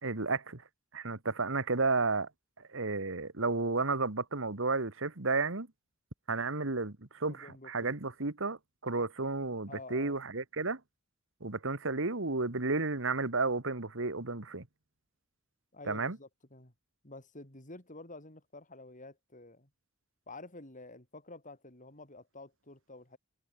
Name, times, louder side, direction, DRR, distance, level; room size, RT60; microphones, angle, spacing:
voice 1, 0.0-0.6 0.9-2.3 2.7-5.7 6.3-10.8 11.4-14.7 15.9-16.2, right 3 dB, 65° right, 1.9 m, -32 dB
voice 2, 7.3-8.0 9.7-10.2 15.7-16.7 17.0-19.7 20.3-23.2, left 2 dB, 40° left, 6.4 m, -50 dB
head